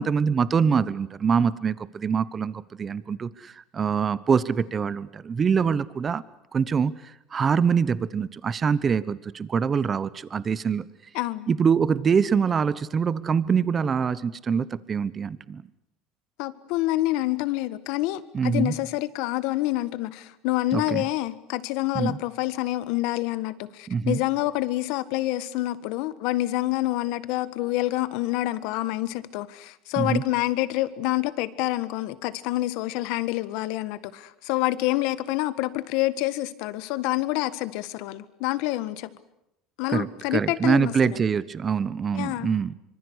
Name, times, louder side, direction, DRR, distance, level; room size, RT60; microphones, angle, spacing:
voice 1, 0.0-6.2 6.5-10.9 11.5-15.7 18.3-18.8 20.7-21.1 21.9-22.2 23.9-24.2 30.0-30.2 39.9-42.7, right 6 dB, 25° right, 1.0 m, -24 dB
voice 2, 11.1-11.5 16.4-39.1 39.8-41.2 42.1-42.5, left 17 dB, 70° left, 1.6 m, -27 dB
25.0 x 25.0 x 8.2 m
cardioid pair, 145°, 0 cm